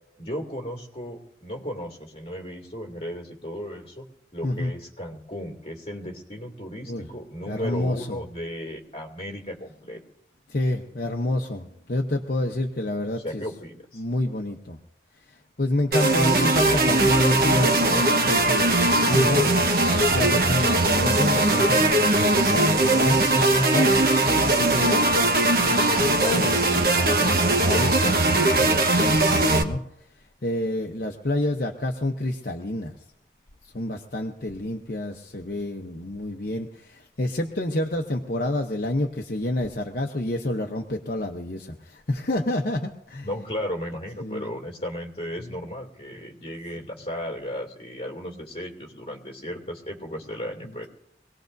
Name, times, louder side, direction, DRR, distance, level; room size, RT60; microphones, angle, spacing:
voice 1, 0.2-4.1 4.3-10.0 13.2-14.0 43.2-50.9, equal, 30° left, 0 dB, 2.5 m, -35 dB
voice 2, 7.5-8.2 10.5-13.4 13.9-14.8 15.3-19.5 19.9-24.0 24.3-25.2 25.7-29.8 30.2-33.0 33.6-43.3 44.2-44.5 45.4-45.5, left 1 dB, 50° left, 2 dB, 0.9 m, -29 dB
sound 1, 15.9-29.6, right 2 dB, 55° right, 1.2 m, -20 dB
24.5 x 18.5 x 2.7 m, 0.76 s
head